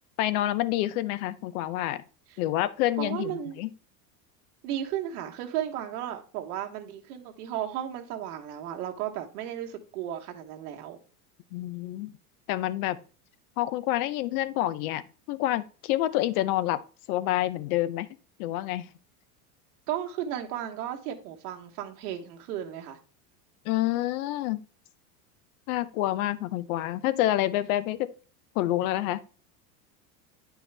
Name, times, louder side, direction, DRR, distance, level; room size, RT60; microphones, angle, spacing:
voice 1, 0.2-2.0 2.4-3.7 11.5-12.1 12.5-13.0 13.6-15.0 15.3-16.8 17.1-18.1 18.4-18.9 23.6-24.6 25.7-28.1 28.6-29.2, left 14 dB, 70° left, 0.7 m, -28 dB
voice 2, 3.0-3.6 4.6-11.0 19.9-23.0, right 11 dB, 80° right, 1.4 m, -34 dB
9.1 x 4.6 x 3.3 m
supercardioid pair, 120°, 45 cm